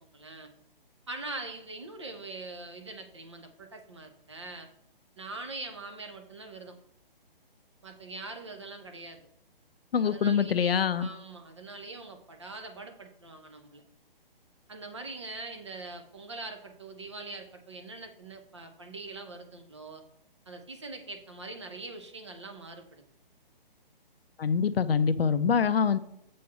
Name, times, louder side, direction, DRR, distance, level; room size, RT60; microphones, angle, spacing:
voice 1, 0.1-0.5 1.1-4.7 5.2-6.8 7.8-9.2 10.0-13.8 14.7-20.0 20.5-23.0, right 3 dB, 30° right, 5 dB, 0.8 m, -43 dB
voice 2, 9.9-11.1 24.4-26.0, left 6 dB, 80° left, 12 dB, 0.7 m, -25 dB
7.5 x 4.3 x 5.7 m, 0.73 s
hypercardioid pair, 180°, 29 cm